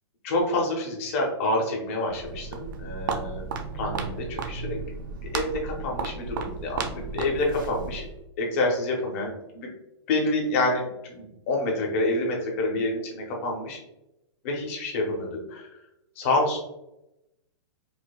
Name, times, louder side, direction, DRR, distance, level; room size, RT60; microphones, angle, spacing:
voice 1, 0.2-3.4 3.7-4.8 5.2-8.1 8.4-9.7 10.1-13.8 14.4-15.7 16.2-16.6, left 2 dB, 25° left, -1 dB, 0.7 m, -27 dB
Walk footsteps, 2.1-8.2, right 5 dB, 45° right, 0.4 m, -34 dB
5.0 x 2.1 x 2.2 m, 0.89 s
hypercardioid pair, 175°, 15 cm